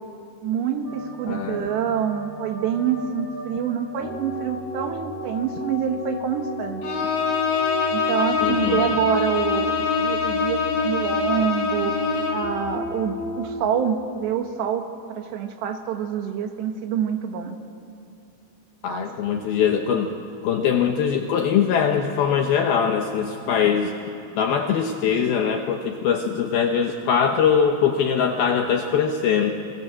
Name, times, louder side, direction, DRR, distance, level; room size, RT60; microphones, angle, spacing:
voice 1, 0.4-7.1 7.9-12.0 12.3-17.6 18.9-19.0 19.3-19.5, right 8 dB, 70° right, 5 dB, 3.4 m, -26 dB
sound 1, 0.8-13.5, left 1 dB, 35° left, 4.5 m, -32 dB
voice 2, 1.2-1.7 8.4-8.9 18.8-20.1 20.4-23.9 24.3-29.5, left 7 dB, 75° left, 4 dB, 2.4 m, -22 dB
Bowed string instrument, 6.8-12.5, left 6 dB, 90° left, 5.4 m, -25 dB
30.0 x 22.5 x 7.5 m, 2.5 s
omnidirectional pair, 5.5 m